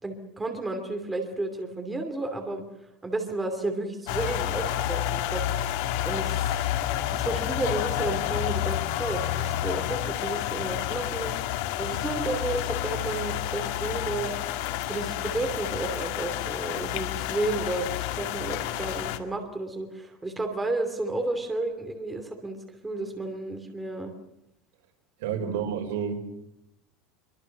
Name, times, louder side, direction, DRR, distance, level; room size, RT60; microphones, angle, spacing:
voice 1, 0.0-2.6 3.0-5.4 6.0-6.5 7.0-11.3 11.8-14.3 14.8-22.6 22.8-24.1 25.3-25.6, right 2 dB, 10° right, 4 dB, 2.8 m, -32 dB
sound 1, 4.1-19.2, left 12 dB, 60° left, 2.0 m, -29 dB
voice 2, 25.2-26.2, right 7 dB, 75° right, 4 dB, 5.4 m, -29 dB
25.0 x 24.0 x 6.7 m, 0.82 s
supercardioid pair, 170°, 0 cm